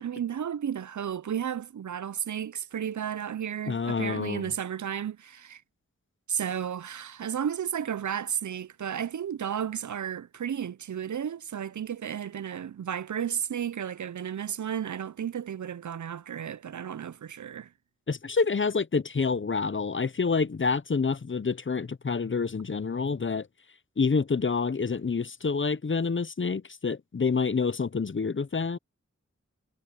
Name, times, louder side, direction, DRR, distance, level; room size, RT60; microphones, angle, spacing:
voice 1, 0.0-5.6 6.3-17.7, right 9 dB, 70° right, 0.4 m, -33 dB
voice 2, 3.7-4.5 18.1-23.5 24.0-28.8, left 4 dB, 40° left, 0.6 m, -27 dB
wide cardioid pair, 50°, 30 cm